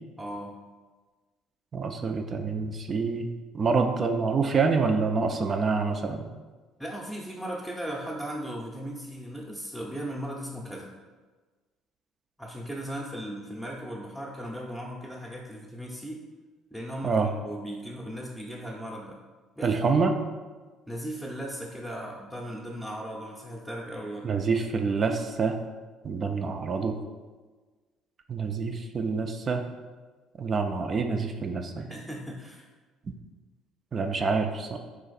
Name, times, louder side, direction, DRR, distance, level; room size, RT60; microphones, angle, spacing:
voice 1, 0.2-0.6 6.8-10.9 12.4-16.2 16.7-19.2 19.6-20.0 20.9-24.4 31.7-32.7, equal, 5° left, -3 dB, 0.6 m, -37 dB
voice 2, 1.7-3.3 3.5-6.3 17.0-17.3 19.6-20.1 24.2-25.5 26.0-26.9 28.3-29.6 30.4-31.9 33.9-34.8, right 4 dB, 40° right, 5 dB, 0.4 m, -26 dB
3.9 x 2.5 x 4.0 m, 1.3 s
hypercardioid pair, 65°, 0 cm